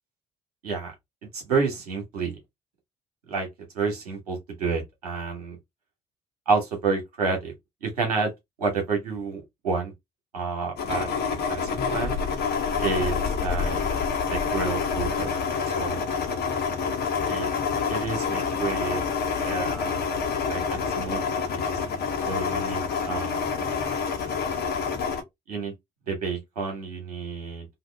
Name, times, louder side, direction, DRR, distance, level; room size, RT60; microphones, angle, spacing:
voice 1, 1.3-2.4 3.3-3.5 3.7-5.6 6.5-7.5 7.8-8.3 8.6-9.9 10.3-11.1 11.5-12.2 12.8-13.9 14.3-15.3 15.7-16.2 17.3-17.5 17.9-19.0 19.4-20.1 20.4-21.2 21.5-21.7 22.3-23.6 25.5-25.7 26.1-27.7, right 4 dB, 85° right, 1.1 m, -29 dB
sound 1, 10.8-25.2, left 6 dB, 60° left, 1.0 m, -27 dB
2.9 x 2.5 x 3.1 m
hypercardioid pair, 50°, 19 cm